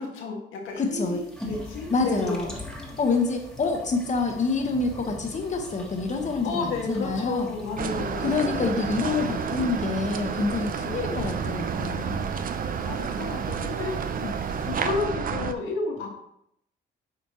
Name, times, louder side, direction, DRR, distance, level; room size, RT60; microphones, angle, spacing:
voice 1, 0.0-2.5 6.4-8.7 10.8-11.0 12.6-14.2 14.7-16.2, left 4 dB, 85° left, 0 dB, 1.6 m, -32 dB
sound 1, 0.7-15.0, left 1 dB, 5° left, 1.5 m, -43 dB
voice 2, 0.8-1.2 1.9-2.5 3.0-7.5 8.2-12.2 14.2-14.3, left 3 dB, 35° left, 4 dB, 1.2 m, -27 dB
sound 2, 7.8-15.5, right 6 dB, 45° right, 0.6 m, -30 dB
7.6 x 4.3 x 3.0 m, 0.75 s
cardioid pair, 90°, 20 cm